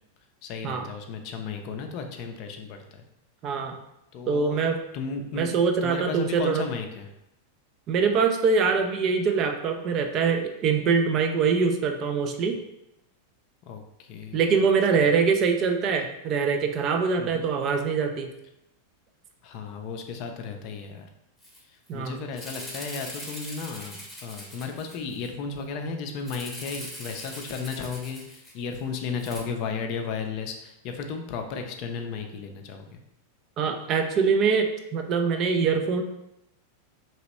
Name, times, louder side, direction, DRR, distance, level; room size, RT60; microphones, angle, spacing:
voice 1, 0.4-3.0 4.1-5.5 5.8-7.1 13.7-14.4 17.2-17.5 19.4-21.1 21.9-33.0, left 5 dB, 40° left, 5 dB, 0.4 m, -34 dB
voice 2, 3.4-3.8 4.3-4.8 5.3-6.7 7.9-12.6 14.3-18.3 21.9-22.2 33.6-36.0, right 5 dB, 35° right, 4 dB, 0.4 m, -24 dB
Rattle (instrument), 21.4-21.6 21.9-22.0 22.3-25.3 26.3-28.8 29.2-29.4, equal, ahead, 0.8 m, -41 dB
3.0 x 2.9 x 2.9 m, 0.87 s
figure-of-eight pair, 90°, 0 cm